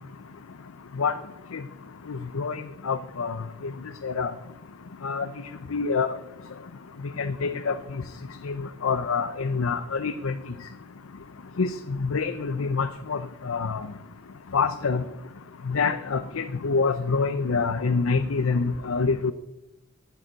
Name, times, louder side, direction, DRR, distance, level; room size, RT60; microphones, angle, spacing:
voice 1, 2.1-3.4 3.6-3.7 4.0-4.3 5.0-5.3 5.7-6.1 7.2-7.8 8.4-10.4 11.6-13.8 14.5-15.0 15.7-19.3, left 4 dB, 80° left, 10 dB, 0.6 m, -26 dB
9.2 x 8.4 x 8.8 m, 0.93 s
head